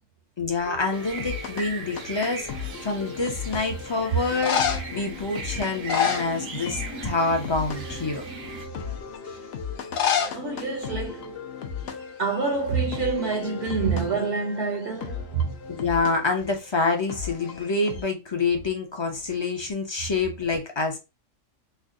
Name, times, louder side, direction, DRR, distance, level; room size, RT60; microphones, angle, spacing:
voice 1, 0.4-8.2 15.7-21.0, left 3 dB, 30° left, 0.5 m, -27 dB
sound 1, 0.6-18.0, left 6 dB, 60° left, 0.8 m, -37 dB
sound 2, 0.9-8.7, right 4 dB, 80° right, 1.2 m, -39 dB
sound 3, 2.8-3.3 4.2-5.0 5.7-6.9 7.2-7.5 8.1-8.2 9.8-10.4 10.7-10.8 11.0-11.1 11.8-12.0 12.3-13.5 17.5-18.1, left 8 dB, 80° left, 1.1 m, -28 dB
voice 2, 10.3-11.4 12.2-15.6, right 4 dB, 60° right, 1.0 m, -27 dB
3.3 x 2.2 x 3.7 m
omnidirectional pair, 1.3 m